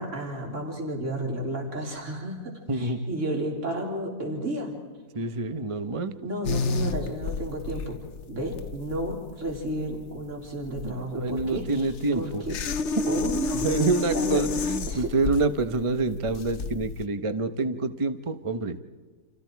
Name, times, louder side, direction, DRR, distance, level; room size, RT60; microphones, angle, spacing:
voice 1, 0.0-4.7 6.2-8.0 8.3-11.9 12.1-12.6 13.1-13.7 14.1-14.4 14.9-15.1, right 1 dB, 45° right, 1 dB, 3.9 m, -32 dB
voice 2, 2.7-3.0 5.1-6.2 10.8-12.5 12.9-18.8, right 3 dB, 25° right, 10 dB, 0.8 m, -27 dB
sound 1, 6.4-17.0, left 4 dB, 50° left, 1.1 m, -31 dB
30.0 x 27.5 x 4.7 m, 1.4 s
omnidirectional pair, 1.7 m